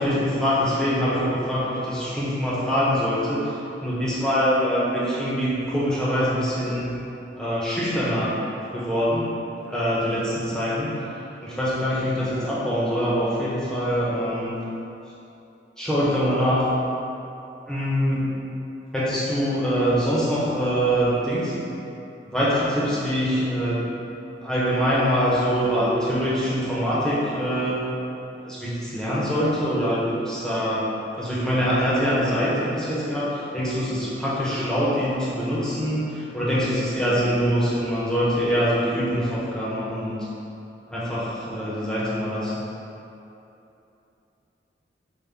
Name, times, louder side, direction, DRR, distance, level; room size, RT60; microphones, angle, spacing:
voice 1, 0.0-3.5 3.8-6.9 7.4-8.3 8.7-9.3 9.6-10.9 11.4-14.6 15.8-16.7 17.7-18.3 18.9-21.5 22.3-23.8 24.4-27.8 28.4-30.9 31.2-40.3 40.9-42.7, equal, 5° left, -9 dB, 0.7 m, -24 dB
5.2 x 2.1 x 3.3 m, 2.8 s
head